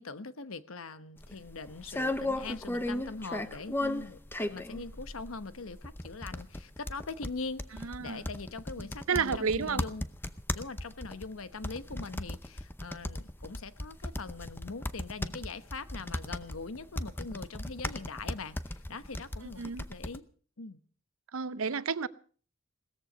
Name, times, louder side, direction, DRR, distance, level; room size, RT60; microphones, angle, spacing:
voice 1, 0.0-10.0 10.5-19.6 19.9-20.2 20.6-20.8, left 3 dB, 80° left, 1.0 m, -42 dB
sound 1, 1.2-20.2, left 1 dB, 10° left, 0.6 m, -37 dB
voice 2, 7.8-8.2 9.1-9.8 19.4-19.8 21.3-22.1, right 5 dB, 80° right, 0.7 m, -31 dB
17.5 x 14.0 x 5.2 m
head